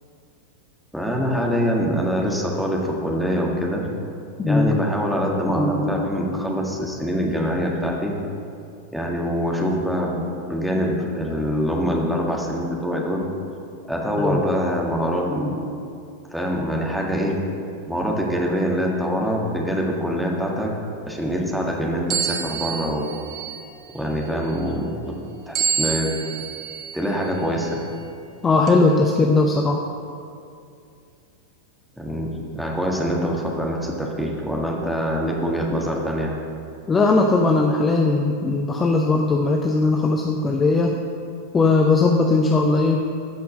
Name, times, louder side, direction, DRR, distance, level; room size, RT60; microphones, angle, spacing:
voice 1, 0.9-3.9 4.4-8.1 8.9-13.2 13.9-15.6 16.3-17.4 17.9-20.7 21.1-23.1 23.9-25.2 25.5-26.2 26.9-27.8 32.0-36.3, equal, ahead, -2 dB, 1.8 m, -24 dB
voice 2, 4.4-4.8 14.2-14.4 28.4-29.8 36.9-40.9 41.5-43.0, left 3 dB, 20° left, 2 dB, 0.8 m, -19 dB
sound 1, 22.1-23.8 25.5-27.0 27.6-27.8 28.7-28.8, right 6 dB, 30° right, 1.1 m, -27 dB
14.0 x 5.8 x 6.5 m, 2.5 s
figure-of-eight pair, 90°, 0 cm